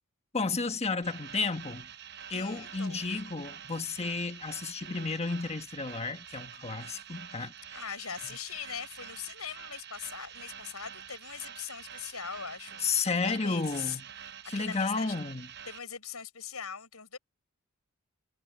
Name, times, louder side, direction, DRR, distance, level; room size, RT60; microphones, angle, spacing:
voice 1, 0.3-1.9 2.3-7.8 12.8-14.0 14.4-15.5, left 4 dB, 30° left, 1.3 m, -32 dB
sound 1, 1.0-15.8, right 9 dB, 50° right, 0.9 m, -47 dB
voice 2, 2.3-3.1 7.7-14.0 14.5-15.1 15.7-17.2, left 8 dB, 85° left, 6.1 m, -41 dB
head